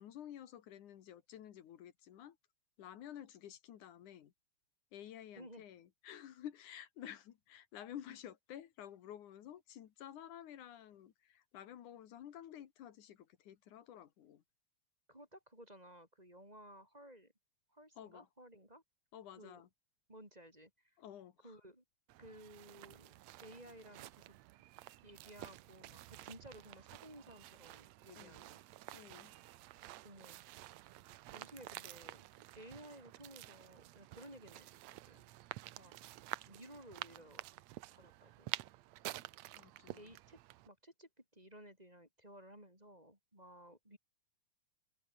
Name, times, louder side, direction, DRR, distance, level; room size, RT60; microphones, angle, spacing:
voice 1, 0.0-2.4 2.8-4.3 4.9-14.4 18.0-18.3 19.1-19.7 21.0-21.6 28.1-28.4 28.9-29.3 39.6-40.1, left 10 dB, 85° left, 3.1 m, -52 dB
voice 2, 15.1-17.3 17.7-18.8 19.3-19.6 20.1-21.0 21.4-21.8 22.2-23.1 23.4-24.4 25.0-28.6 30.0-30.4 31.3-32.3 32.5-35.3 35.8-36.0 36.5-37.4 37.9-38.5 40.0-40.4 40.6-44.0, equal, 10° right, 7.3 m, -56 dB
sound 1, 22.1-40.7, right 16 dB, 75° right, 1.8 m, -50 dB
omnidirectional pair, 3.4 m